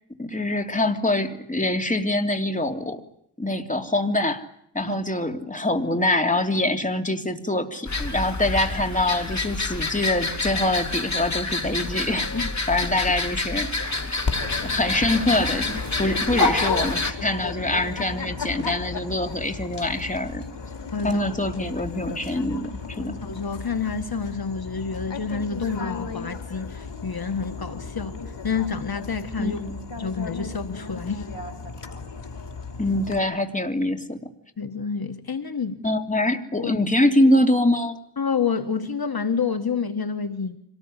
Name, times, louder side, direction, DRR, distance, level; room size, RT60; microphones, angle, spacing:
voice 1, 0.2-3.0 3.4-4.4 4.7-13.7 14.0-14.2 14.6-20.4 21.0-23.1 29.4-29.8 32.8-34.2 35.8-38.0, left 1 dB, 20° left, 5 dB, 3.0 m, -24 dB
sound 1, 7.9-17.1, left 3 dB, 40° left, 3.1 m, -28 dB
Dog, 14.3-33.2, left 4 dB, 85° left, 2.9 m, -33 dB
voice 2, 20.9-21.2 23.0-28.2 28.4-29.6 30.0-31.3 34.6-35.8 36.6-36.7 38.2-40.6, left 5 dB, 60° left, 8 dB, 1.6 m, -28 dB
26.0 x 19.5 x 10.0 m, 0.71 s
wide cardioid pair, 65°, 42 cm